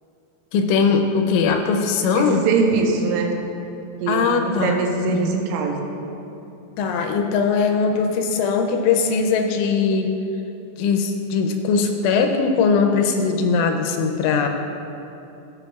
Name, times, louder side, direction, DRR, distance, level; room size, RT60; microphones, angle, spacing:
voice 1, 0.5-2.4 4.1-5.3 6.8-10.1 10.8-14.5, left 5 dB, 85° left, 4 dB, 2.9 m, -20 dB
voice 2, 2.1-3.4 4.0-5.9, right 5 dB, 85° right, 2 dB, 3.2 m, -22 dB
16.0 x 6.6 x 2.3 m, 2.8 s
omnidirectional pair, 5.7 m